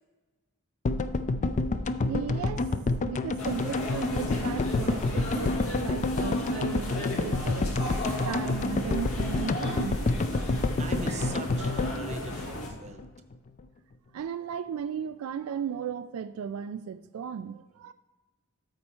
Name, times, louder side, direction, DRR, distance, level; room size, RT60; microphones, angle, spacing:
sound 1, 0.8-13.1 13.3-13.4 13.6-13.7, left 3 dB, 35° left, 0.4 m, -29 dB
voice 1, 2.0-2.7 3.0-7.7 8.2-10.0 14.1-17.9, right 7 dB, 80° right, 0.3 m, -36 dB
sound 2, 3.4-12.7, left 1 dB, 80° left, 1.7 m, -36 dB
voice 2, 10.8-13.0, right 4 dB, 35° right, 0.8 m, -41 dB
13.0 x 4.3 x 4.4 m
head